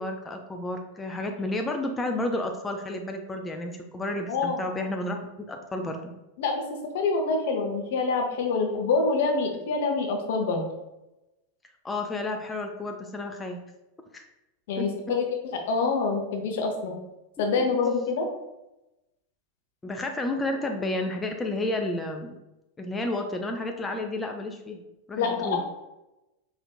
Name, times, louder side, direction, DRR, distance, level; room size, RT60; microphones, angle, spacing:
voice 1, 0.0-6.1 11.8-13.6 14.1-14.3 14.8-14.9 17.6-17.7 19.8-22.4 22.8-24.8 25.1-25.6, left 2 dB, 15° left, 3 dB, 0.3 m, -31 dB
voice 2, 4.3-4.6 6.4-6.6 6.9-10.6 14.7-17.0 17.4-18.3 25.2-25.7, left 4 dB, 55° left, 3 dB, 0.6 m, -26 dB
4.2 x 2.5 x 2.2 m, 0.95 s
figure-of-eight pair, 90°, 0 cm